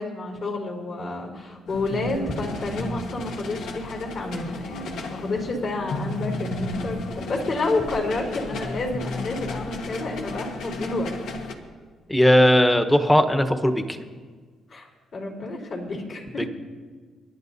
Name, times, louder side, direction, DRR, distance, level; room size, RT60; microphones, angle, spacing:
voice 1, 0.0-11.1 14.7-14.9 15.1-16.5, left 2 dB, 55° left, 0 dB, 3.6 m, -29 dB
sound 1, 1.7-11.5, left 2 dB, 80° left, 1.4 m, -34 dB
voice 2, 12.1-14.0 16.4-16.5, equal, 10° left, 8 dB, 1.1 m, -18 dB
28.0 x 11.5 x 2.7 m, 1.5 s
cardioid pair, 90°, 0 cm